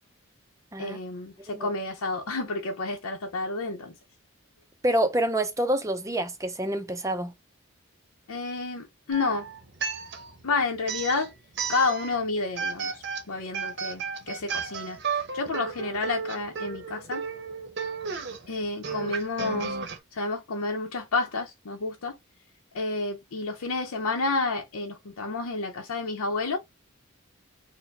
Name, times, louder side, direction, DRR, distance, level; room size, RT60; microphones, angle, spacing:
voice 1, 0.8-3.9 8.3-9.5 10.4-11.3 11.7-17.2 18.5-19.8 20.1-22.2 22.7-26.6, left 3 dB, 90° left, 0.7 m, -30 dB
voice 2, 4.8-7.3, right 1 dB, 15° right, 0.4 m, -27 dB
sound 1, 9.1-10.4 10.8-12.2 12.6-20.0, right 5 dB, 50° right, 0.7 m, -33 dB
4.7 x 2.1 x 3.3 m
head